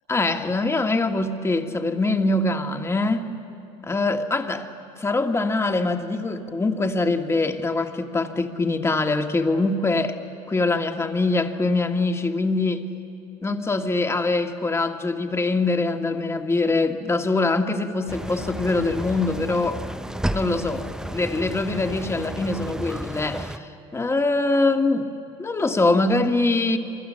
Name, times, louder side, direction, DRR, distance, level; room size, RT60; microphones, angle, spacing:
voice 1, 0.1-3.3 3.8-4.7 5.0-10.2 10.5-12.9 13.4-19.8 20.3-20.9 21.1-25.1 25.4-26.8, left 2 dB, 20° left, 5 dB, 1.8 m, -23 dB
sound 1, 18.1-23.6, right 1 dB, 5° right, 0.8 m, -32 dB
25.5 x 24.5 x 7.6 m, 2.7 s
supercardioid pair, 90°, 15 cm